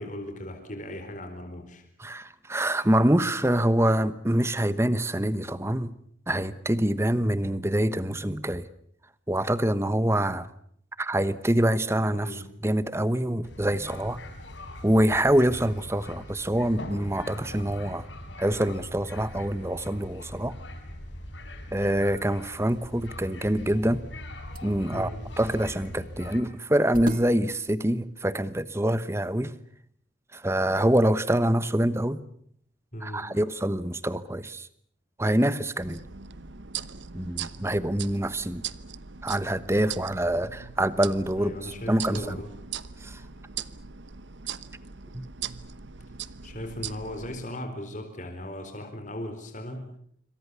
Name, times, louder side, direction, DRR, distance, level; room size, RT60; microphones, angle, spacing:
voice 1, 0.0-1.9 12.1-12.4 24.9-25.2 32.9-33.2 41.4-42.5 46.4-49.9, left 1 dB, 40° left, 5 dB, 4.3 m, -37 dB
voice 2, 2.0-5.9 6.3-8.7 9.3-10.5 11.0-14.2 14.8-18.1 18.4-20.5 21.7-24.0 24.6-25.1 25.4-29.5 30.3-32.2 33.0-34.7 35.2-36.0 37.1-38.6 39.2-42.4 43.0-43.2 45.1-45.2, right 1 dB, 15° right, 15 dB, 1.1 m, -25 dB
sound 1, 13.4-26.4, left 1 dB, 70° left, 5.6 m, -41 dB
sound 2, 23.4-28.8, right 1 dB, 45° right, 1.9 m, -43 dB
sound 3, 35.8-47.4, right 8 dB, 65° right, 1.0 m, -40 dB
27.0 x 25.0 x 6.9 m, 0.65 s
head